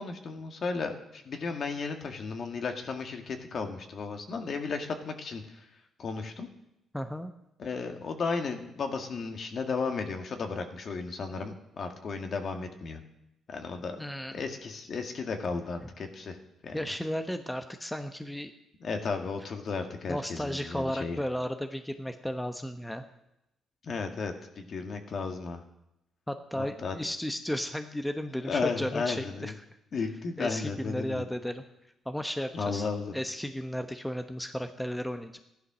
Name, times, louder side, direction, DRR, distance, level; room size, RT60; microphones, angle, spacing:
voice 1, 0.0-5.4 6.0-6.5 7.6-13.0 13.5-14.0 14.3-16.4 16.6-16.8 18.8-21.2 23.8-25.6 26.5-26.9 28.4-29.5 29.9-31.2 32.5-33.1, left 4 dB, 50° left, 5 dB, 2.1 m, -34 dB
voice 2, 6.9-7.3 14.0-14.4 15.8-15.9 16.7-18.5 20.1-23.1 26.3-29.6 30.4-31.6 32.0-32.9 33.1-35.4, equal, 5° left, 7 dB, 1.0 m, -34 dB
15.0 x 11.5 x 6.2 m, 0.85 s
cardioid pair, 90°, 0 cm